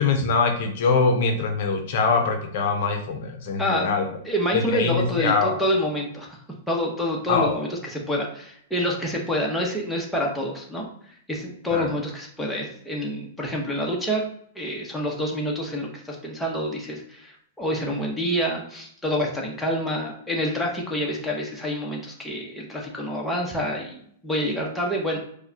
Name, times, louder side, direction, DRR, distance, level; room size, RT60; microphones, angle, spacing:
voice 1, 0.0-4.0 4.5-5.6 7.3-7.6 11.7-11.9, left 4 dB, 60° left, 4 dB, 0.6 m, -23 dB
voice 2, 4.2-6.4 6.7-14.2 14.5-24.0 24.2-25.2, equal, 5° left, -3 dB, 0.9 m, -27 dB
4.6 x 2.2 x 2.8 m, 0.65 s
hypercardioid pair, 120°, 0 cm